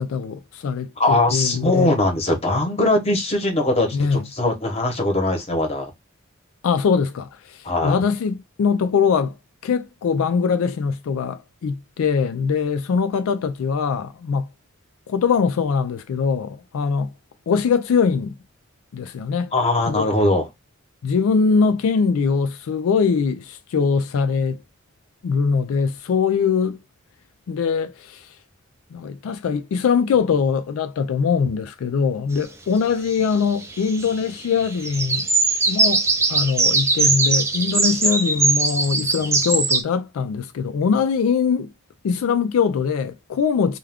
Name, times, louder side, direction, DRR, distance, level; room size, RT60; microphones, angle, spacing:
voice 1, 0.0-2.0 3.9-4.2 6.6-9.4 9.6-14.5 15.1-17.1 17.5-18.3 18.9-19.5 19.9-20.1 21.0-24.6 25.2-26.8 27.5-28.3 28.9-35.3 35.7-36.0 36.3-41.7 42.0-43.8, left 5 dB, 85° left, 0.3 m, -22 dB
voice 2, 1.0-5.9 7.6-8.0 19.5-20.5, left 2 dB, 30° left, 0.9 m, -21 dB
sound 1, 33.2-34.2 34.4-39.8, right 3 dB, 15° right, 0.4 m, -20 dB
2.3 x 2.3 x 3.4 m
head